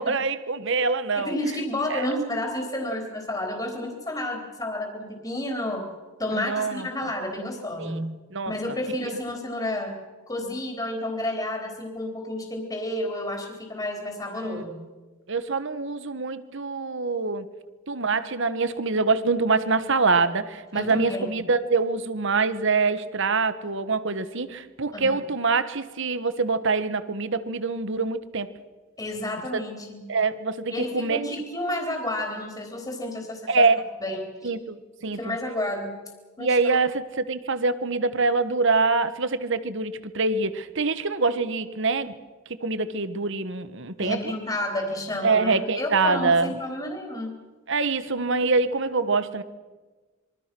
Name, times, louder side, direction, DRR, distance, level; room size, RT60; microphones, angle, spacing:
voice 1, 0.0-1.3 1.9-2.0 6.3-6.8 7.8-8.0 8.3-8.5 9.0-9.1 14.4-14.6 15.3-17.5 17.9-28.5 30.1-31.2 33.5-33.8 34.4-35.4 36.4-42.2 42.6-44.3 45.2-46.5 47.7-49.4, right 4 dB, 60° right, 13 dB, 1.5 m, -25 dB
voice 2, 1.2-5.9 6.2-8.1 8.5-10.0 10.3-14.7 20.7-21.4 24.9-25.2 29.0-30.1 30.7-33.7 34.0-34.5 35.0-36.0 36.4-36.7 44.0-47.3, left 1 dB, 20° left, 3 dB, 3.8 m, -31 dB
26.5 x 23.5 x 6.2 m, 1.3 s
head